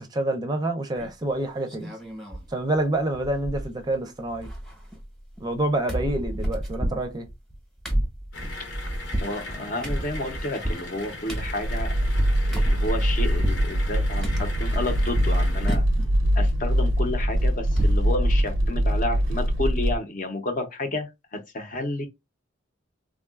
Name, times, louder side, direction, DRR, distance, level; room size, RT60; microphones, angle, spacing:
voice 1, 0.0-1.9 2.5-4.5 5.4-7.3, right 1 dB, 20° right, 0.5 m, -27 dB
sound 1, 0.9-1.3 1.7-2.5 2.8-2.9 3.1-4.0 4.2-5.6 5.9-13.7 14.2-15.4 15.7-16.1 16.5-18.1 18.4-18.5 18.8-19.0, right 1 dB, 5° left, 0.8 m, -31 dB
sound 2, 8.3-15.8, left 2 dB, 75° left, 0.9 m, -39 dB
voice 2, 9.2-11.9 12.5-15.8 16.4-22.1, left 2 dB, 45° left, 0.6 m, -31 dB
sound 3, 11.6-20.0, equal, 85° right, 0.5 m, -23 dB
3.6 x 2.3 x 2.3 m
head